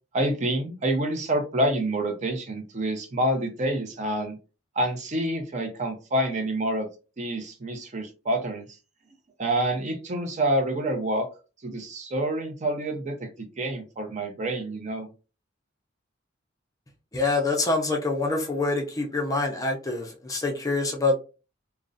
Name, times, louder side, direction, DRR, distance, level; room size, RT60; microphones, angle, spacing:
voice 1, 0.1-4.4 4.8-6.9 7.2-8.6 9.4-11.3 11.6-15.1, right 1 dB, 35° right, 0.4 m, -27 dB
voice 2, 17.1-21.2, left 3 dB, 15° left, 0.4 m, -26 dB
2.4 x 2.0 x 2.5 m
head